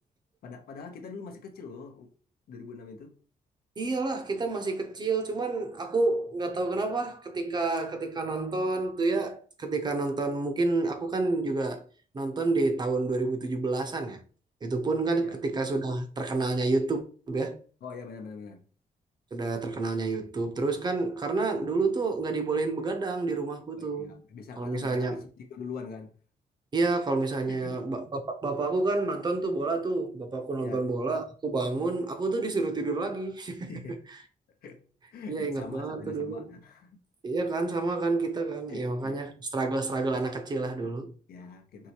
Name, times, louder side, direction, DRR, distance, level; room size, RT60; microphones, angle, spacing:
voice 1, 0.4-2.1 2.5-3.1 15.2-15.4 17.8-18.6 23.8-26.1 27.5-27.8 30.6-30.8 33.7-34.0 34.6-34.8 35.1-37.0 38.7-39.3 40.8-40.9 41.3-41.9, left 5 dB, 80° left, 0.8 m, -43 dB
voice 2, 3.8-11.8 12.1-14.2 14.6-17.6 19.3-24.2 24.6-25.2 26.7-33.7 35.3-36.5 37.2-41.1, right 3 dB, 25° right, 0.6 m, -29 dB
4.6 x 3.1 x 2.9 m
wide cardioid pair, 165°, 16 cm